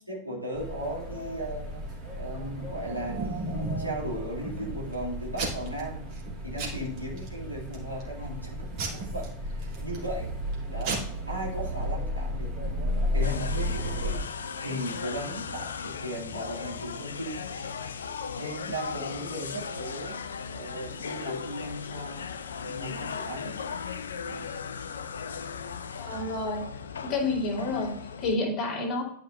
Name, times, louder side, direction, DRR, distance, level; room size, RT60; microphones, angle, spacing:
voice 1, 0.1-1.8 2.2-6.1 6.4-10.3 10.7-17.6 18.4-20.2 20.5-22.2 22.6-23.5 24.3-24.5, right 1 dB, 90° right, -5 dB, 2.8 m, -37 dB
sound 1, 0.5-14.2, equal, 25° right, 2.5 m, -34 dB
Packing tape duct tape / Tearing, 2.6-4.0 4.4-4.9 5.3-5.8 6.1-6.3 6.6-7.3 7.7-8.1 8.8-10.1 10.5-10.6 10.8-11.0, right 3 dB, 45° right, 2.7 m, -34 dB
sound 2, 13.2-28.4, left 6 dB, 70° left, 0.5 m, -37 dB
voice 2, 26.0-29.0, left 2 dB, 30° left, -3 dB, 2.5 m, -30 dB
11.5 x 5.3 x 2.6 m, 0.70 s
figure-of-eight pair, 90°, 0 cm